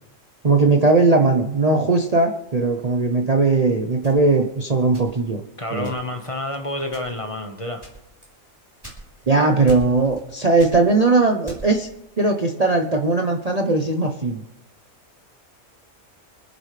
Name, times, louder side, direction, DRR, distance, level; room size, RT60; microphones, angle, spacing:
voice 1, 0.4-5.4 5.7-5.9 9.3-11.9 12.2-14.4, right 3 dB, 35° right, 3 dB, 0.8 m, -19 dB
sound 1, 4.0-5.4 5.8-6.3 6.8-7.3 7.8-9.3 9.7-10.3 10.6-11.9, right 2 dB, 15° right, 4.4 m, -41 dB
voice 2, 5.6-7.8, left 1 dB, 25° left, 4 dB, 1.4 m, -29 dB
27.5 x 10.5 x 3.3 m, 0.90 s
omnidirectional pair, 1.5 m